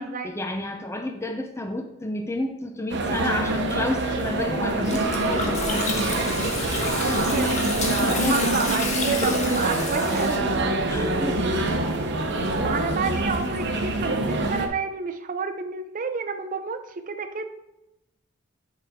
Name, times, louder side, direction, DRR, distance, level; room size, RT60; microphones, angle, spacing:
voice 1, 0.0-5.8 7.9-8.4 10.9-11.4, left 1 dB, 15° left, 4 dB, 0.6 m, -30 dB
sound 1, 2.9-14.7, right 2 dB, 60° right, 0.9 m, -25 dB
Gurgling, 4.8-10.4, left 2 dB, 35° left, 1.3 m, -29 dB
voice 2, 6.7-7.6 8.0-10.6 12.6-17.5, right 5 dB, 40° right, 8 dB, 0.6 m, -30 dB
9.8 x 5.0 x 3.6 m, 0.94 s
head